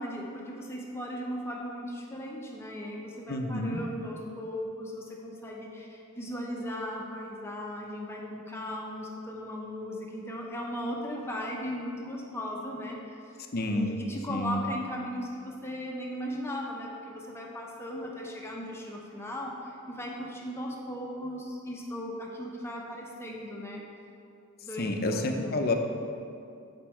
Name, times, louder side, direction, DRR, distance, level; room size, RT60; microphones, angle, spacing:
voice 1, 0.0-13.2 13.7-23.8 24.6-25.5, equal, 10° left, -2 dB, 0.8 m, -37 dB
voice 2, 3.3-3.8 13.5-14.0 14.3-14.6 24.8-25.7, left 2 dB, 45° left, 4 dB, 0.6 m, -29 dB
8.3 x 5.2 x 4.4 m, 2.5 s
head